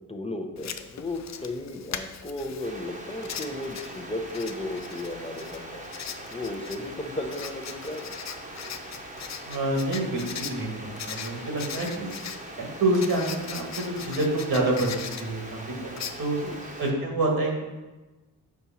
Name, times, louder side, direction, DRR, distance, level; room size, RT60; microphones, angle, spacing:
voice 1, 0.1-5.9 6.3-8.1 16.4-16.6, left 2 dB, 15° left, 4 dB, 0.8 m, -35 dB
Writing, 0.6-16.9, left 8 dB, 45° left, 0.5 m, -41 dB
sound 1, 2.6-16.9, right 1 dB, 20° right, 1.1 m, -42 dB
voice 2, 9.5-12.1 12.6-16.4 16.8-17.6, right 2 dB, 70° right, 0 dB, 1.6 m, -27 dB
5.5 x 4.5 x 4.2 m, 1.1 s
cardioid pair, 60°, 39 cm